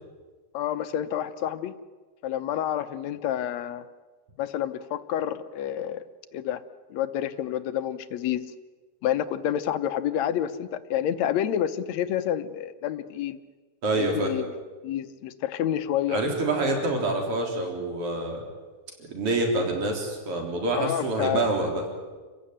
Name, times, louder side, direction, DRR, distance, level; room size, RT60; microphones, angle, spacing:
voice 1, 0.5-1.7 2.2-3.9 4.4-6.0 6.3-6.6 6.9-8.5 9.0-13.4 13.9-14.5 14.8-16.2 20.8-21.5, left 10 dB, 70° left, 11 dB, 2.0 m, -28 dB
voice 2, 13.8-14.3 16.1-18.4 19.0-21.8, right 2 dB, 45° right, 2 dB, 4.6 m, -26 dB
28.5 x 15.5 x 10.0 m, 1.4 s
omnidirectional pair, 3.6 m